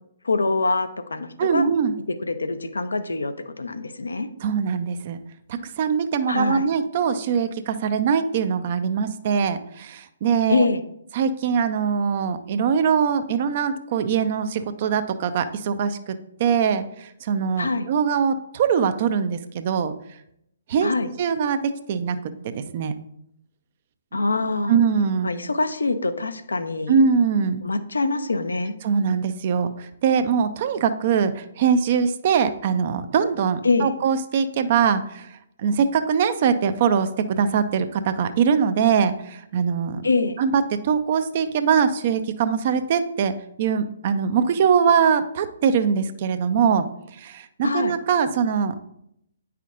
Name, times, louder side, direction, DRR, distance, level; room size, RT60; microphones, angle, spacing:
voice 1, 0.2-1.7 2.2-4.3 6.3-6.7 10.5-10.8 17.6-17.9 20.8-21.1 24.1-24.7 25.2-26.9 27.6-28.7 33.6-33.9 40.0-40.4 47.6-47.9, left 3 dB, 75° left, 10 dB, 0.6 m, -24 dB
voice 2, 1.4-1.9 4.4-5.2 5.5-10.6 11.1-16.1 16.4-19.9 20.7-20.9 21.2-22.2 22.4-22.9 24.7-25.3 26.9-27.6 28.8-35.3 35.6-40.0 40.4-43.3 43.6-46.9 47.2-48.9, right 6 dB, 40° right, 11 dB, 0.5 m, -22 dB
8.9 x 5.7 x 2.5 m, 0.76 s
figure-of-eight pair, 130°, 0 cm